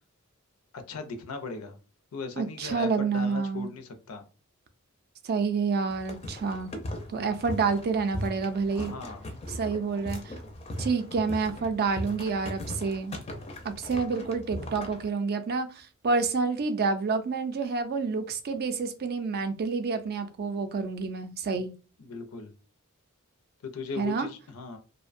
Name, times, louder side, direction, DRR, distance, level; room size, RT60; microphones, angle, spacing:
voice 1, 0.7-1.8 2.1-2.9 3.1-4.2 7.1-7.3 8.7-9.3 21.5-21.6 22.0-22.5 23.6-24.8, left 4 dB, 85° left, 0.5 m, -38 dB
voice 2, 2.4-3.7 5.2-6.7 7.1-8.9 9.5-10.3 10.8-13.2 13.6-21.7 24.0-24.3, right 4 dB, 45° right, 0.4 m, -28 dB
sound 1, 5.9-15.1, left 1 dB, 30° left, 0.4 m, -39 dB
2.5 x 2.1 x 2.4 m
head